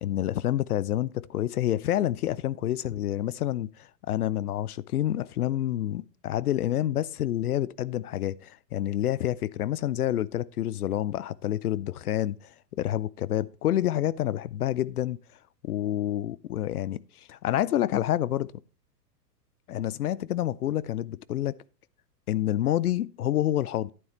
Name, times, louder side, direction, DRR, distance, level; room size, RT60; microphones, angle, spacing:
voice 1, 0.0-15.2 15.6-18.5 19.7-21.5 22.3-23.9, left 12 dB, 65° left, 0.5 m, -28 dB
11.0 x 9.4 x 3.0 m
figure-of-eight pair, 110°, 50 cm